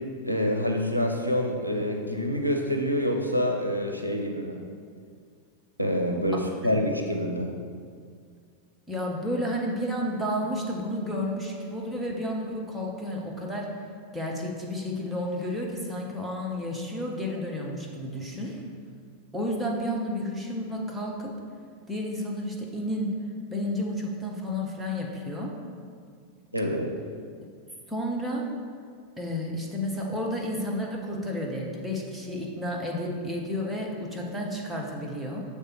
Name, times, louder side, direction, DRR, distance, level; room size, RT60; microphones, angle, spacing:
voice 1, 0.2-4.6 5.8-7.5 26.5-26.9, equal, 90° right, 2 dB, 0.5 m, -27 dB
voice 2, 8.9-13.7 14.1-18.6 19.3-21.3 21.9-23.1 23.5-25.5 27.9-28.4 29.2-35.4, left 1 dB, 5° right, -2 dB, 0.9 m, -31 dB
6.6 x 3.3 x 4.5 m, 2.1 s
figure-of-eight pair, 90°, 0 cm